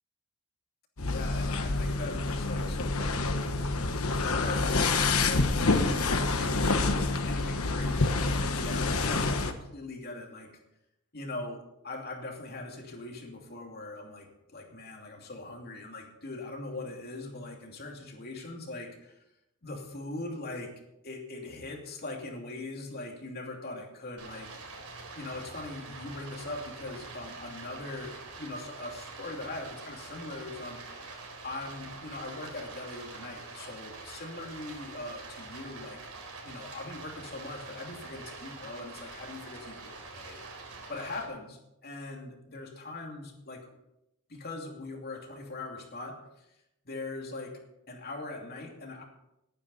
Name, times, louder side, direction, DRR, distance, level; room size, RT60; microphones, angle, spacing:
sound 1, 1.0-9.5, left 3 dB, 75° left, 1.2 m, -27 dB
voice 1, 1.0-6.7 7.2-10.5 11.1-19.2 19.6-20.7 21.0-24.5 25.1-36.0 36.4-40.4 40.9-43.7 44.3-46.4 46.8-47.6 47.9-49.0, left 2 dB, 45° left, 1 dB, 2.7 m, -41 dB
Stream, 24.2-41.2, right 3 dB, 80° right, 4.0 m, -45 dB
19.0 x 9.6 x 4.2 m, 0.85 s
head